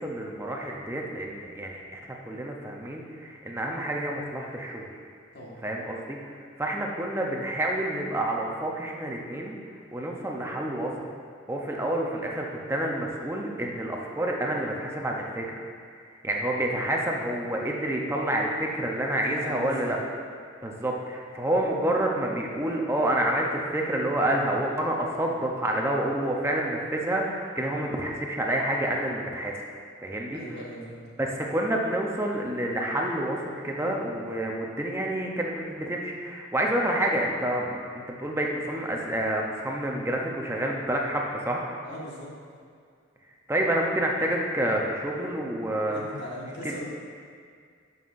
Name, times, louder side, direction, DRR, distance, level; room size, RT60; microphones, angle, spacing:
voice 1, 0.0-4.9 5.6-9.6 9.9-11.1 11.5-15.5 16.2-20.0 20.6-29.6 30.0-30.4 31.2-41.7 43.5-46.0 46.6-46.7, right 1 dB, 15° right, -1 dB, 0.7 m, -28 dB
voice 2, 19.2-20.0 30.3-31.1 41.8-42.3 45.9-46.8, equal, 55° left, -5 dB, 1.6 m, -39 dB
11.5 x 5.6 x 2.6 m, 2.1 s
head